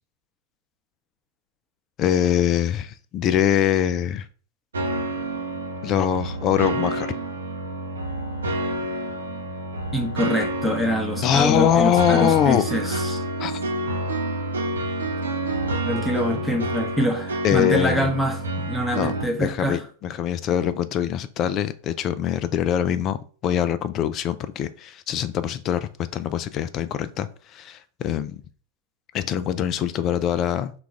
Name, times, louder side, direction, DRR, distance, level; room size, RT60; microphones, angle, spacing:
voice 1, 2.0-4.3 5.8-7.1 11.2-13.0 13.4-13.6 17.4-18.1 18.9-23.2 23.4-28.4 29.1-30.7, left 10 dB, 35° left, 0.3 m, -23 dB
sound 1, 4.7-19.3, right 2 dB, 70° right, 0.6 m, -28 dB
voice 2, 9.9-13.2 15.9-19.8, equal, 5° left, 0.9 m, -25 dB
3.9 x 2.4 x 4.5 m
figure-of-eight pair, 90°, 0 cm